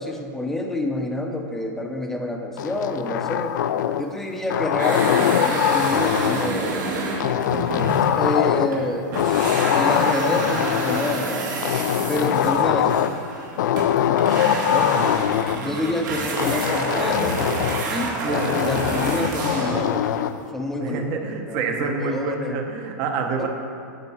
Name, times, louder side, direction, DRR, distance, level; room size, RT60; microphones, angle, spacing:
voice 1, 0.0-3.5 4.0-7.0 8.2-11.5 12.1-13.0 14.7-14.8 15.5-17.4 17.9-21.2 21.5-22.6, left 1 dB, 5° left, 2 dB, 0.7 m, -28 dB
sound 1, 2.6-4.1 4.5-6.6 7.2-8.8 9.1-11.2 11.6-13.2 13.6-15.6 16.4-17.9 18.3-20.4, left 10 dB, 80° left, 0.4 m, -22 dB
sound 2, 4.8-8.9 9.1-19.9, right 3 dB, 80° right, 2.1 m, -29 dB
voice 2, 14.5-15.0 20.8-23.5, right 4 dB, 40° right, 3 dB, 0.9 m, -27 dB
9.0 x 7.5 x 5.6 m, 2.4 s
supercardioid pair, 160°, 10 cm